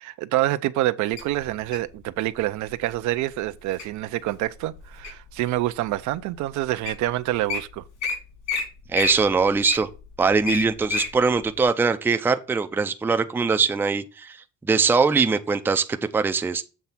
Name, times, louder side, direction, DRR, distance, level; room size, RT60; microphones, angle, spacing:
voice 1, 0.0-7.8, right 15 dB, 75° right, 0.6 m, -27 dB
Wild animals, 1.2-1.9 2.6-2.9 3.4-3.8 4.4-5.3 5.9-6.0 6.6-6.7 6.8-7.0 7.3-7.6 8.0-8.1 8.5-8.6 8.9-11.1 11.6-11.7, left 4 dB, 75° left, 3.0 m, -28 dB
voice 2, 8.9-9.9 10.2-14.4 14.6-16.6, right 4 dB, 5° right, 0.4 m, -22 dB
7.3 x 3.4 x 5.6 m
cardioid pair, 135°, 30 cm